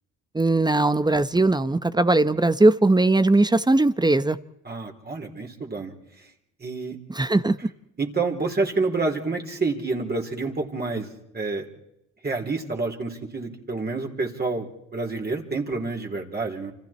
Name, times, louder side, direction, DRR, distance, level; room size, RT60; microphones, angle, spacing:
voice 1, 0.3-4.4 7.1-7.5, right 2 dB, 15° right, 13 dB, 0.9 m, -19 dB
voice 2, 4.6-6.3 6.6-7.0 8.0-11.7 12.2-16.7, right 3 dB, 30° right, 1 dB, 3.8 m, -28 dB
29.0 x 26.0 x 4.4 m, 0.83 s
cardioid pair, 90°, 30 cm